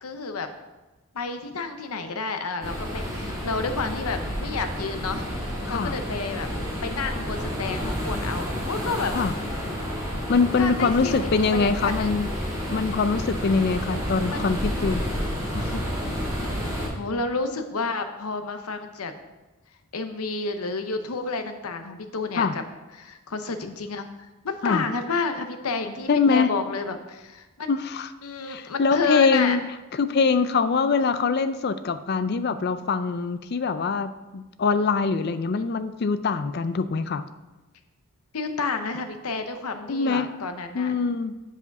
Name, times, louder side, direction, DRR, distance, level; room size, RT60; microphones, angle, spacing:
voice 1, 0.0-0.5 1.1-5.3 5.7-6.5 6.8-9.1 10.6-12.2 14.3-14.6 16.9-19.1 19.9-22.6 23.0-24.1 24.4-27.7 28.2-29.6 38.3-40.9, left 4 dB, 85° left, 7 dB, 0.8 m, -30 dB
sound 1, 2.6-16.9, equal, 15° right, 2.2 m, -30 dB
voice 2, 10.3-12.3 12.7-15.1 15.6-15.8 22.3-22.5 24.6-24.8 26.1-26.5 27.7-28.1 28.5-29.6 29.9-37.2 39.9-40.3 40.7-41.3, left 4 dB, 45° left, 12 dB, 0.4 m, -23 dB
8.1 x 5.0 x 5.3 m, 1.1 s
head